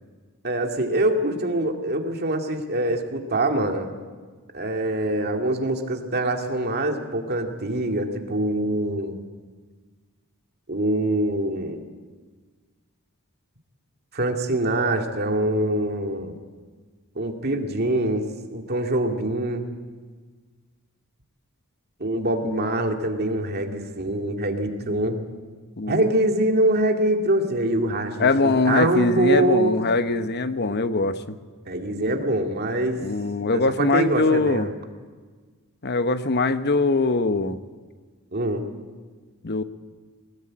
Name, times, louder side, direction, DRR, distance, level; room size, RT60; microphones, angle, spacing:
voice 1, 0.4-3.9 4.5-9.1 10.7-11.8 14.1-16.4 17.2-18.2 18.5-19.7 22.0-25.2 25.9-29.8 31.7-33.0 33.5-34.7 38.3-38.7, right 1 dB, 45° right, 3 dB, 2.2 m, -24 dB
voice 2, 25.8-26.1 28.2-31.4 33.0-34.7 35.8-37.6 39.4-39.6, left 3 dB, 50° left, 11 dB, 1.0 m, -22 dB
21.0 x 20.0 x 8.7 m, 1.5 s
head